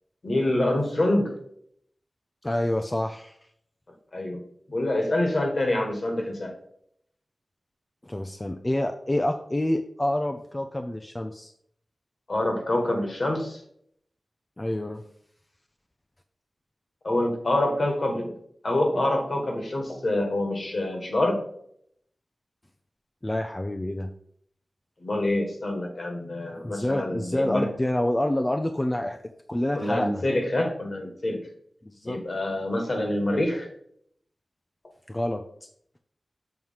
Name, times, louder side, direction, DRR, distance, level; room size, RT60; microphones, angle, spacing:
voice 1, 0.2-1.4 4.1-4.4 4.7-6.5 12.3-13.6 17.0-18.4 18.6-21.4 25.0-27.7 29.7-31.4 32.0-33.7, left 1 dB, 55° left, 2 dB, 1.6 m, -26 dB
voice 2, 2.4-3.4 8.0-11.5 14.6-15.0 23.2-24.1 26.6-29.2 29.5-30.2 31.8-32.2 35.1-35.4, left 1 dB, 20° left, 5 dB, 0.4 m, -27 dB
7.2 x 3.1 x 5.6 m, 0.68 s
wide cardioid pair, 85°, 0 cm